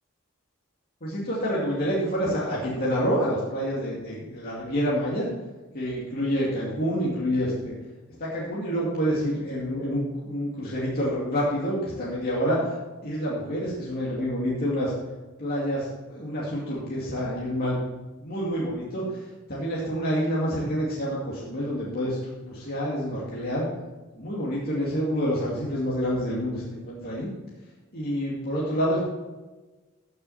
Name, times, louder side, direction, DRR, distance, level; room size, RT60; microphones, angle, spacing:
voice 1, 1.0-5.3 5.7-7.8 8.2-12.8 13.0-14.9 15.4-17.8 18.2-19.0 19.5-23.7 24.1-27.3 27.9-29.0, equal, 45° left, -6 dB, 2.4 m, -27 dB
15.0 x 6.4 x 4.3 m, 1.2 s
head